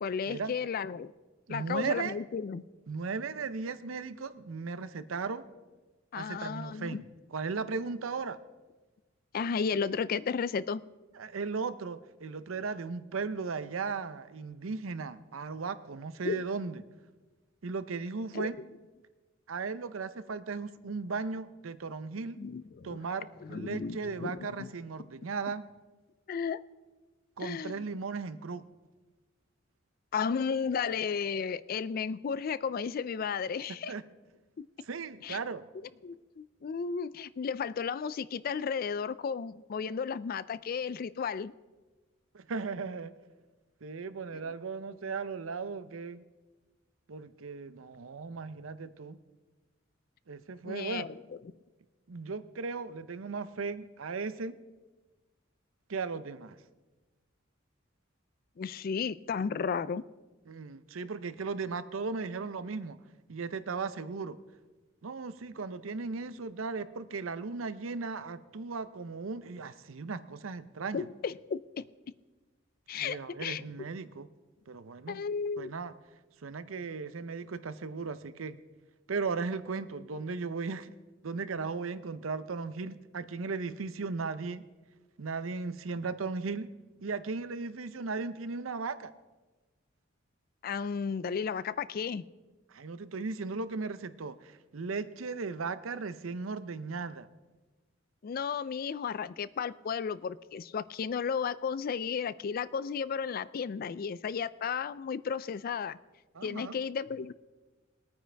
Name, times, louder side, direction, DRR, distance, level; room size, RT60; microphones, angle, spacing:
voice 1, 0.0-1.1 1.5-2.6 6.1-7.1 9.3-10.8 16.2-16.5 18.3-18.6 22.4-23.1 23.4-24.7 26.3-26.6 27.4-27.9 30.1-33.9 34.6-34.7 35.2-35.4 36.0-41.5 44.4-44.5 50.6-51.4 58.6-60.0 70.9-71.8 72.9-73.6 75.1-75.7 90.6-92.2 98.2-106.0 106.4-107.3, left 6 dB, 45° left, 18 dB, 0.3 m, -34 dB
voice 2, 1.5-2.1 2.9-5.5 6.1-7.0 7.3-8.4 11.2-16.8 17.6-18.5 19.5-22.4 22.8-25.6 27.4-28.6 33.9-34.0 34.9-35.6 42.3-43.1 43.8-46.2 47.1-49.2 50.3-51.1 52.1-54.5 55.9-56.6 60.5-63.0 63.3-64.4 65.0-71.0 73.0-74.3 74.7-75.2 75.6-75.9 76.4-78.6 79.1-80.9 81.2-84.6 85.2-86.7 87.0-89.1 92.7-97.3 106.3-106.7, right 4 dB, 90° right, 13 dB, 0.7 m, -36 dB
21.5 x 9.3 x 3.4 m, 1.2 s
head